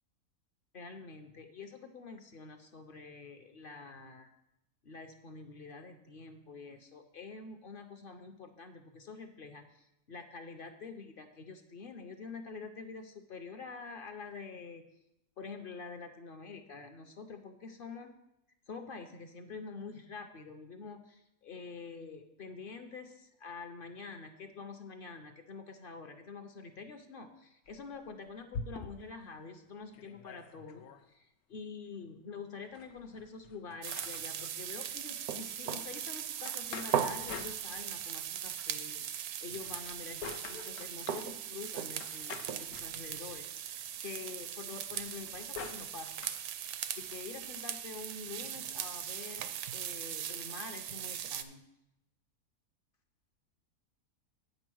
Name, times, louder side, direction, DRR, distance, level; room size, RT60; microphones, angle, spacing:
voice 1, 0.7-4.3 4.8-14.9 15.4-18.1 18.7-46.3 46.9-51.6, left 4 dB, 55° left, 7 dB, 0.6 m, -47 dB
sound 1, 27.7-29.2 29.6-29.7 29.9-31.0 32.6-34.5 36.4-38.1 39.5-41.3 42.0-43.4 44.9-46.4, left 5 dB, 75° left, 1.0 m, -47 dB
sound 2, 33.8-51.4, right 9 dB, 80° right, 1.0 m, -39 dB
8.4 x 5.3 x 6.1 m, 0.85 s
omnidirectional pair, 1.6 m